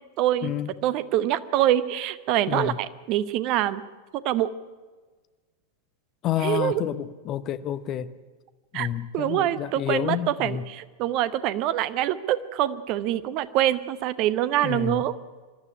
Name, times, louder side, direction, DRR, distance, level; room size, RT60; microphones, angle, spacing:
voice 1, 0.2-0.5 0.8-3.8 4.1-4.5 6.4-6.8 8.7-8.9 9.1-15.1, right 12 dB, 40° right, 15 dB, 0.9 m, -25 dB
voice 2, 6.2-8.1 8.7-10.6 14.6-15.0, left 11 dB, 35° left, 12 dB, 1.0 m, -29 dB
24.5 x 12.5 x 9.8 m, 1.4 s
figure-of-eight pair, 90°, 0 cm